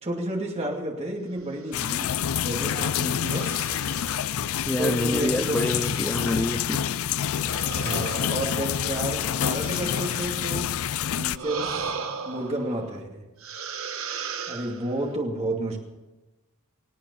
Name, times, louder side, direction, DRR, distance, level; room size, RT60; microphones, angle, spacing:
voice 1, 0.0-3.5 4.7-5.6 7.8-10.7 11.1-11.8 12.2-13.3 14.5-15.8, right 1 dB, 30° right, 0 dB, 2.5 m, -31 dB
sound 1, 1.5-2.2 3.1-4.8 5.4-6.7 7.4-10.8 11.3-13.0 13.4-15.1, right 6 dB, 65° right, 1.4 m, -37 dB
sound 2, 1.7-11.4, left 9 dB, 70° left, 0.4 m, -27 dB
voice 2, 4.7-6.8, left 1 dB, 10° left, 7 dB, 0.5 m, -27 dB
25.5 x 8.7 x 5.6 m, 1.1 s
head